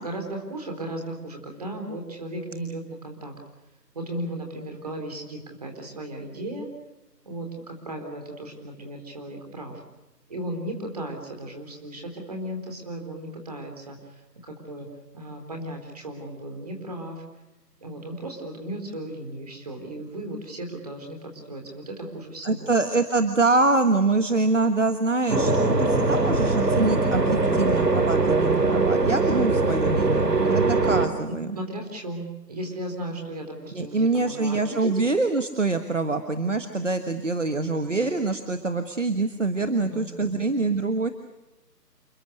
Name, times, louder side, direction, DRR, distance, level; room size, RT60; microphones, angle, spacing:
voice 1, 0.0-3.3 3.9-6.7 7.3-9.8 10.3-14.9 15.1-17.2 17.8-22.7 31.5-34.9 39.8-40.4, right 1 dB, 25° right, 3 dB, 4.0 m, -36 dB
voice 2, 22.4-31.5 33.7-41.1, right 3 dB, 45° right, 8 dB, 1.6 m, -25 dB
sound 1, 25.3-31.1, right 3 dB, 75° right, 3.4 m, -22 dB
29.0 x 21.0 x 6.6 m, 1.1 s
figure-of-eight pair, 170°, 49 cm